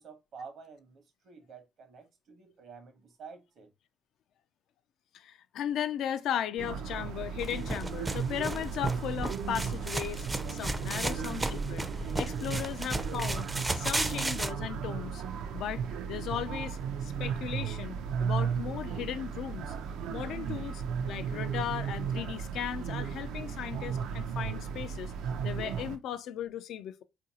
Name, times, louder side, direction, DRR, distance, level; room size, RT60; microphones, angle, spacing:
voice 1, 0.0-3.7 10.9-11.5, right 5 dB, 70° right, 0.8 m, -49 dB
voice 2, 5.1-13.5 13.7-15.2 15.5-15.8 16.1-19.7 20.1-25.1 25.4-27.0, left 9 dB, 80° left, 0.3 m, -36 dB
sound 1, 6.6-26.0, right 7 dB, 90° right, 0.4 m, -35 dB
sound 2, 7.4-14.5, right 2 dB, 15° right, 0.4 m, -34 dB
3.8 x 2.5 x 2.7 m
cardioid pair, 90°, 0 cm